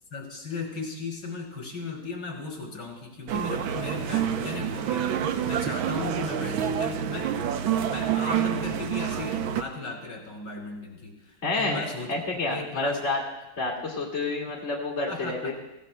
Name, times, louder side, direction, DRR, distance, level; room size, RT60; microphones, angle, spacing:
voice 1, 0.1-5.2 5.5-7.3 7.8-13.0 15.1-15.5, left 3 dB, 60° left, -1 dB, 3.4 m, -36 dB
sound 1, 3.3-9.6, right 9 dB, 85° right, 1.5 m, -28 dB
voice 2, 11.4-11.8 12.1-13.2 13.6-15.5, left 3 dB, 35° left, -4 dB, 2.5 m, -29 dB
20.0 x 17.0 x 2.2 m, 0.95 s
omnidirectional pair, 2.2 m